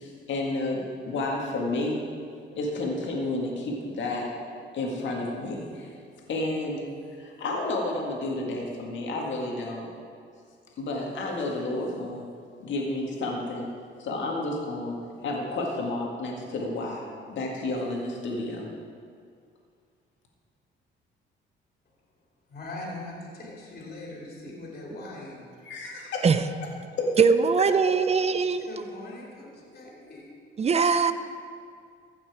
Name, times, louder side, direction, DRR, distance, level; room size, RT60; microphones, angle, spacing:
voice 1, 0.0-2.1 2.6-4.3 4.7-5.9 6.3-6.9 7.2-9.9 10.8-12.2 12.6-13.7 14.0-18.7 25.6-26.3 27.0-27.1, left 2 dB, 70° left, -1 dB, 1.9 m, -31 dB
voice 2, 22.5-25.5 28.6-30.3, left 2 dB, 50° left, -3 dB, 2.9 m, -41 dB
voice 3, 27.2-28.7 30.6-31.1, right 5 dB, 30° right, 11 dB, 0.6 m, -21 dB
15.5 x 5.9 x 4.9 m, 2.2 s
cardioid pair, 90°, 20 cm